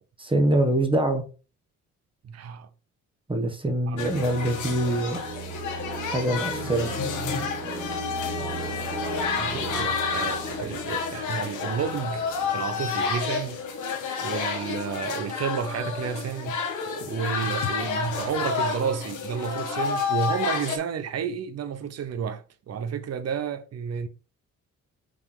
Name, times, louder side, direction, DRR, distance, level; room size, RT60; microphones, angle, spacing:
voice 1, 0.2-1.2 3.3-5.2 6.1-6.9, right 1 dB, 15° right, 1.4 m, -24 dB
voice 2, 2.2-2.7 3.9-4.4 9.1-13.6 14.2-16.6 17.1-24.1, right 7 dB, 55° right, 0.9 m, -31 dB
sound 1, 3.9-13.7, right 7 dB, 40° right, 1.9 m, -39 dB
sound 2, 4.0-20.8, left 5 dB, 80° left, 1.5 m, -30 dB
5.3 x 3.4 x 5.5 m
cardioid pair, 90°, 30 cm